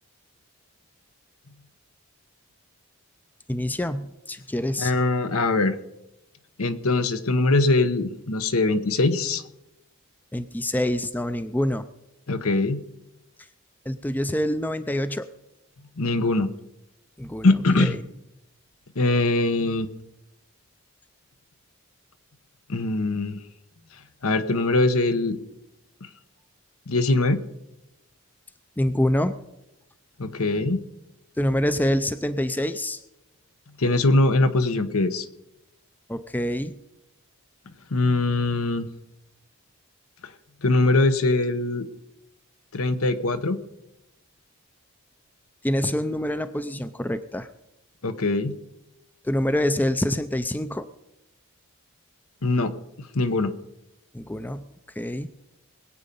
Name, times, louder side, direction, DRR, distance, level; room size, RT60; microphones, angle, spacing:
voice 1, 3.5-4.9 10.3-11.9 13.4-13.5 13.9-15.3 17.2-17.5 17.8-18.0 28.8-29.4 31.4-33.0 36.1-36.8 45.6-47.5 49.2-50.9 54.1-54.7 55.0-55.3, left 1 dB, 10° left, 12 dB, 0.4 m, -26 dB
voice 2, 4.8-5.8 6.6-9.4 12.3-12.8 16.0-16.5 17.4-18.0 19.0-19.9 22.7-23.4 24.2-25.4 26.9-27.4 30.2-30.8 33.8-35.3 37.9-38.9 40.6-41.9 42.7-43.6 48.0-48.5 52.4-52.7 53.0-53.5, left 2 dB, 75° left, 11 dB, 1.0 m, -22 dB
21.0 x 8.6 x 5.3 m, 0.89 s
head